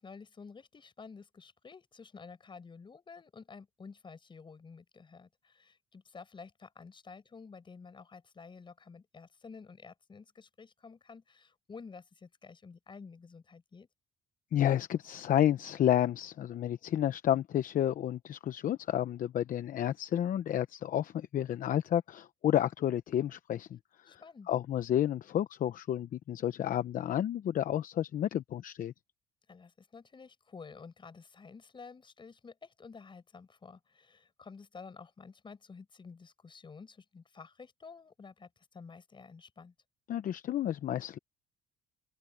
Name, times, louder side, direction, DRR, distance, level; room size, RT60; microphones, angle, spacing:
voice 1, 0.0-13.9 24.1-24.5 29.5-39.7, left 5 dB, 30° left, 5.4 m, -51 dB
voice 2, 14.5-24.2 24.5-28.9 40.1-41.2, left 11 dB, 55° left, 0.9 m, -31 dB
open air
cardioid pair, 110°, 17 cm